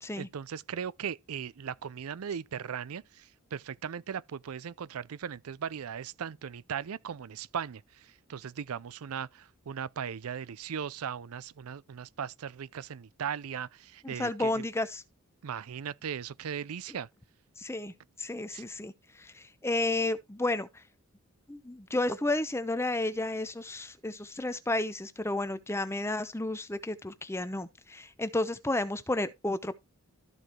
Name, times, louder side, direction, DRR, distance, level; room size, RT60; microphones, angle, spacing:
voice 1, 0.2-14.6 15.4-17.1 18.5-18.6, right 7 dB, 75° right, 0.5 m, -38 dB
voice 2, 14.0-15.0 17.6-17.9 18.2-20.7 21.5-29.7, left 2 dB, 10° left, 0.7 m, -32 dB
13.5 x 4.8 x 4.4 m
head